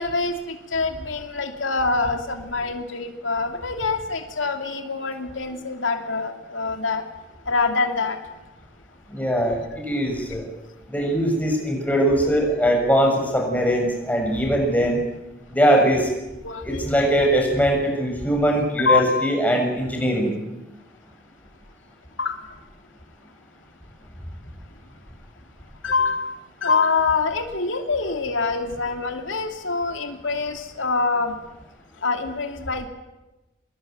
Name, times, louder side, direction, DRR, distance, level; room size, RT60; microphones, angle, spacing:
voice 1, 0.0-7.0 7.5-8.2 16.4-16.8 18.8-19.4 22.2-22.4 25.8-31.3 32.0-32.9, left 4 dB, 85° left, 5 dB, 2.7 m, -25 dB
voice 2, 9.1-10.5 10.9-15.0 15.5-16.1 16.6-20.4, equal, 10° left, 1 dB, 6.8 m, -21 dB
26.0 x 21.0 x 9.4 m, 1.0 s
head